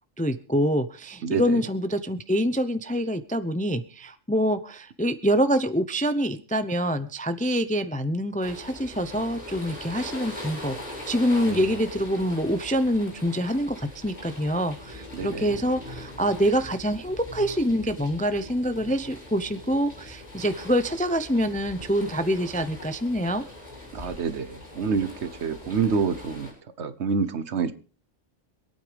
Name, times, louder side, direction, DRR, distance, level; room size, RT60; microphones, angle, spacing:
voice 1, 0.2-23.4, equal, 10° left, 10 dB, 0.5 m, -26 dB
voice 2, 1.2-1.6 11.5-11.6 15.2-15.6 23.9-24.5 24.8-26.5 26.8-27.7, right 5 dB, 65° right, 12 dB, 1.2 m, -27 dB
sound 1, 8.4-26.5, left 1 dB, 30° left, 7.7 m, -41 dB
26.5 x 9.0 x 3.4 m, 0.39 s
omnidirectional pair, 1.3 m